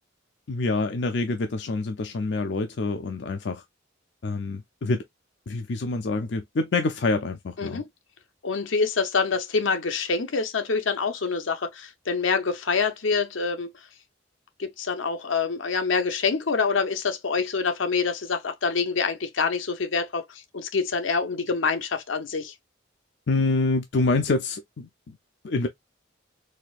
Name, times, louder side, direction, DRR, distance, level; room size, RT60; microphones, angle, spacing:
voice 1, 0.5-3.6 4.2-5.0 5.5-7.8 23.3-25.2 25.4-25.7, left 3 dB, 60° left, 0.5 m, -26 dB
voice 2, 8.4-13.7 14.6-22.5, left 4 dB, 85° left, 0.8 m, -26 dB
4.2 x 2.7 x 2.3 m
head